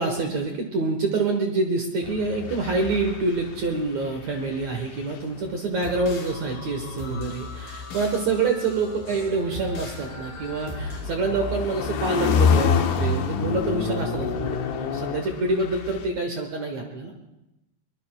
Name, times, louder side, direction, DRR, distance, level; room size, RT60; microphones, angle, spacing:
voice 1, 0.0-17.1, right 3 dB, 75° right, 3 dB, 1.6 m, -26 dB
sound 1, 2.0-5.5 6.5-6.8 8.9-16.1, left 6 dB, 75° left, 3.1 m, -27 dB
sound 2, 5.8-11.0, left 2 dB, 55° left, 4.8 m, -37 dB
22.5 x 21.0 x 2.3 m, 0.94 s
omnidirectional pair, 5.1 m